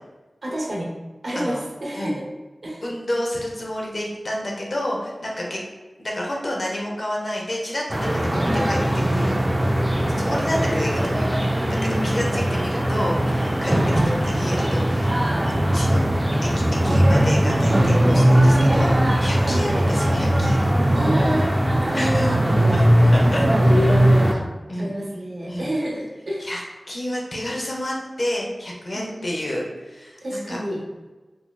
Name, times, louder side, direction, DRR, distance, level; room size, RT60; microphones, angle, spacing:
voice 1, 0.4-0.9 1.2-2.3 2.6-2.8 8.3-8.7 11.6-12.4 19.4-20.0 20.9-21.5 21.9-22.9 23.2-24.5 24.8-26.5 28.9-29.5 30.2-30.8, equal, 70° right, -3 dB, 0.7 m, -28 dB
voice 2, 2.8-5.6 6.0-13.7 14.0-15.1 15.4-16.0 16.4-20.6 21.9-22.3 22.7-22.9 23.1-23.4 23.8-23.9 24.7-24.9 25.5-25.7 26.4-30.2 30.5-30.6, left 1 dB, 55° left, -2 dB, 0.7 m, -30 dB
sound 1, 7.9-24.3, equal, 20° right, 0.3 m, -19 dB
3.1 x 2.7 x 2.3 m, 1.2 s
wide cardioid pair, 45°, 0 cm